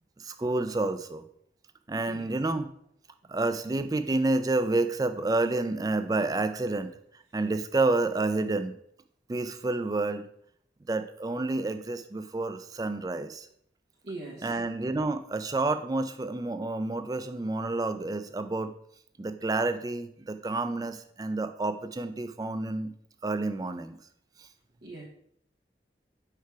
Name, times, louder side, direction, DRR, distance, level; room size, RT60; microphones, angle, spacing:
voice 1, 0.2-1.2 1.9-2.7 3.3-6.9 7.3-8.7 9.3-10.3 10.9-13.5 14.4-18.7 19.2-22.9 23.2-24.0, right 2 dB, 20° right, 10 dB, 0.3 m, -29 dB
voice 2, 14.0-14.6 24.8-25.1, right 2 dB, 70° right, -4 dB, 1.1 m, -41 dB
4.7 x 4.6 x 4.7 m, 0.68 s
head